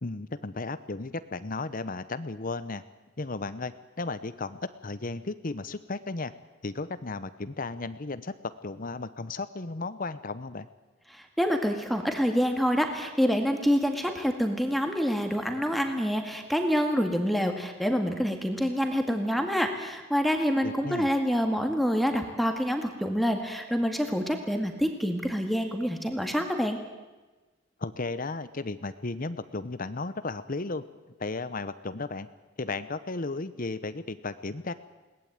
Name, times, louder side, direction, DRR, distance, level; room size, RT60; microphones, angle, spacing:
voice 1, 0.0-2.8 3.2-6.3 6.6-8.3 8.6-10.7 20.6-21.1 27.8-30.8 31.2-32.3 32.6-34.7, left 3 dB, 45° left, 13 dB, 0.9 m, -34 dB
voice 2, 11.1-26.8, equal, ahead, 4 dB, 2.0 m, -27 dB
21.5 x 18.5 x 8.9 m, 1.2 s
head